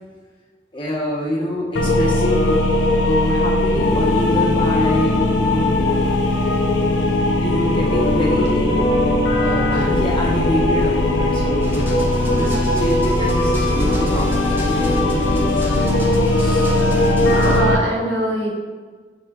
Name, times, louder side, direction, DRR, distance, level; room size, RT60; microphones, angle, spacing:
voice 1, 0.7-2.7 3.0-5.8 7.4-8.7 9.3-12.1 12.3-15.7 16.4-16.7, left 1 dB, 30° left, -5 dB, 1.0 m, -26 dB
sound 1, 1.8-17.8, left 2 dB, 75° left, 0.5 m, -18 dB
voice 2, 8.3-8.8 12.2-12.6 17.2-18.5, right 1 dB, 70° right, -4 dB, 1.2 m, -24 dB
sound 2, 11.6-17.6, right 1 dB, 10° right, 0.6 m, -29 dB
5.5 x 3.7 x 2.4 m, 1.4 s
head